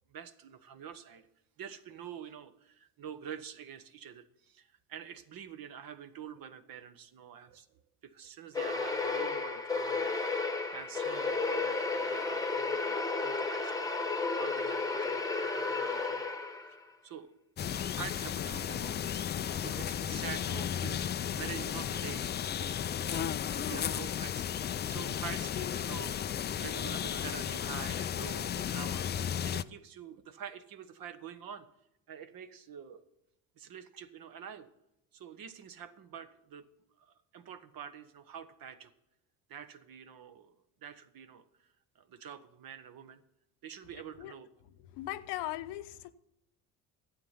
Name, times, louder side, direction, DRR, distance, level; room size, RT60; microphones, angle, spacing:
voice 1, 0.1-1.3 1.6-16.3 17.0-17.3 17.9-24.5 24.9-31.7 32.1-33.0 33.6-34.7 35.1-36.7 37.0-38.9 39.5-40.5 40.8-41.7 41.9-43.2 43.6-44.5, right 8 dB, 55° right, 11 dB, 1.1 m, -47 dB
sound 1, 8.5-16.8, left 3 dB, 10° left, 1.1 m, -33 dB
sound 2, 17.6-29.6, left 9 dB, 25° left, 0.4 m, -34 dB
voice 2, 44.6-46.1, left 15 dB, 70° left, 11 dB, 0.8 m, -39 dB
11.5 x 8.2 x 5.8 m, 0.86 s
hypercardioid pair, 65°, 43 cm